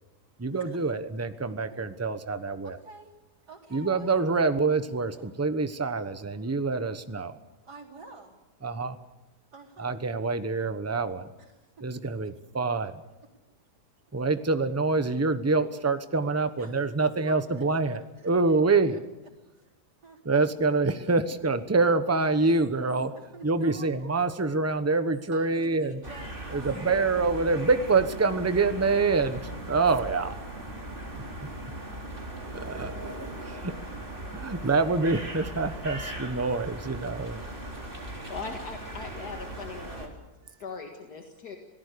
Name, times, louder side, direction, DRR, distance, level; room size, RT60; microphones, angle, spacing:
voice 1, 0.4-2.8 3.7-7.4 8.6-9.0 9.8-11.3 11.8-13.0 14.1-19.0 20.2-23.1 23.4-26.0 26.5-30.4 31.1-31.5 32.5-33.1 33.4-33.7 34.3-37.4, right 3 dB, 10° right, 10 dB, 0.9 m, -26 dB
voice 2, 2.6-3.1 3.5-4.3 5.2-5.3 7.7-8.4 9.5-10.0 11.4-11.9 16.6-16.8 17.0-18.6 18.9-19.0 19.5-19.7 20.0-20.2 22.3-22.5 23.2-23.9 25.3-26.3 26.5-27.0 27.4-27.6, right 4 dB, 80° right, -2 dB, 4.5 m, -49 dB
sound 1, 26.0-40.1, right 1 dB, 30° right, 3.8 m, -39 dB
voice 3, 38.3-40.1 40.5-41.6, left 4 dB, 75° left, 3 dB, 2.4 m, -40 dB
26.5 x 18.0 x 6.9 m, 1.1 s
omnidirectional pair, 1.7 m